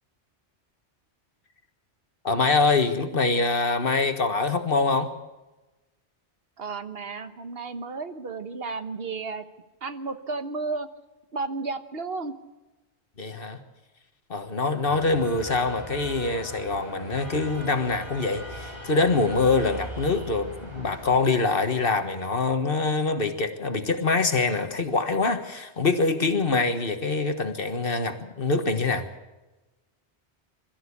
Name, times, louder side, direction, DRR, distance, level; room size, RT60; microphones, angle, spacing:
voice 1, 2.2-5.1 13.2-13.6 14.3-29.0, left 3 dB, 55° left, 8 dB, 1.7 m, -24 dB
voice 2, 6.6-9.4 9.8-10.9 11.3-12.3 14.8-15.1, right 4 dB, 60° right, 10 dB, 1.3 m, -33 dB
sound 1, 14.9-21.2, equal, 30° right, 4.0 m, -40 dB
22.0 x 14.0 x 8.5 m, 1.1 s
omnidirectional pair, 1.2 m